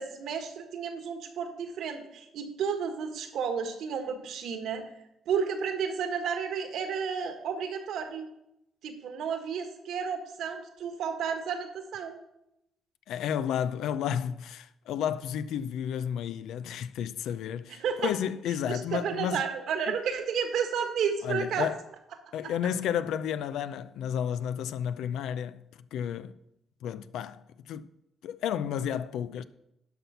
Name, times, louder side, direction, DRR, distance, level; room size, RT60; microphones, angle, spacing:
voice 1, 0.0-4.8 5.3-8.3 8.8-12.2 17.7-18.1 18.7-21.7, right 6 dB, 75° right, 1.6 m, -32 dB
voice 2, 13.1-19.4 19.9-20.0 21.2-21.8 22.3-26.3 26.8-27.9 28.2-29.4, left 9 dB, 80° left, 0.5 m, -32 dB
11.5 x 5.5 x 5.7 m
cardioid pair, 90°, 0 cm